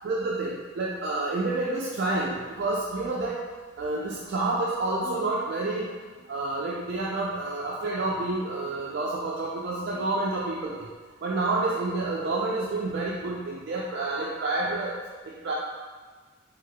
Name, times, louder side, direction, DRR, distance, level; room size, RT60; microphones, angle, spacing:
voice 1, 0.0-3.4 3.8-5.9 6.3-10.9 11.2-15.0 15.4-15.5, right 2 dB, 60° right, -5 dB, 0.4 m, -29 dB
3.3 x 3.1 x 2.2 m, 1.4 s
head